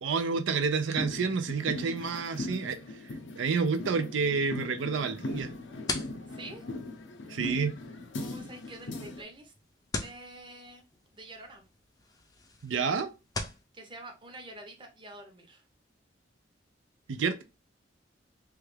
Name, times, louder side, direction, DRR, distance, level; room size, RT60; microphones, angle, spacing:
voice 1, 0.0-2.8 3.3-5.5 7.3-7.7 12.6-13.1 17.1-17.4, right 5 dB, 90° right, 8 dB, 0.5 m, -29 dB
sound 1, 1.0-9.2, left 2 dB, 80° left, 0.6 m, -39 dB
sound 2, 5.3-13.6, left 3 dB, 20° left, 0.4 m, -42 dB
voice 2, 6.3-6.6 8.1-9.5 10.0-10.8 11.1-11.6 13.7-15.6 17.1-17.2, right 2 dB, 25° right, 3 dB, 0.7 m, -47 dB
3.1 x 2.3 x 3.3 m, 0.27 s
head